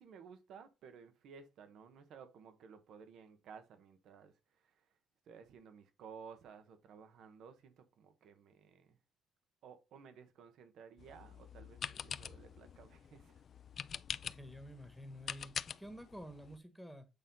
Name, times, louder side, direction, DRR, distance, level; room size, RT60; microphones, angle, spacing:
voice 1, 0.0-4.8 5.3-9.0 9.6-13.4, right 6 dB, 75° right, 1.1 m, -56 dB
sound 1, 11.0-16.6, left 7 dB, 55° left, 0.4 m, -45 dB
voice 2, 14.2-17.1, equal, ahead, 1.3 m, -50 dB
8.2 x 3.8 x 4.1 m
cardioid pair, 90°, 0 cm